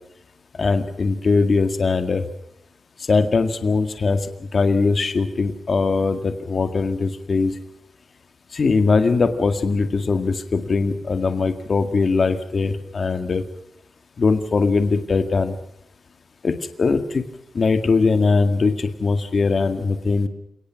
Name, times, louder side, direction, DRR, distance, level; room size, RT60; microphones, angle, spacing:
voice 1, 0.6-2.2 3.1-4.2 4.5-7.5 8.5-13.4 14.2-15.6 16.4-17.2 17.5-20.3, left 4 dB, 40° left, 8 dB, 2.0 m, -20 dB
29.0 x 18.5 x 6.0 m, 0.79 s
wide cardioid pair, 150°, 0 cm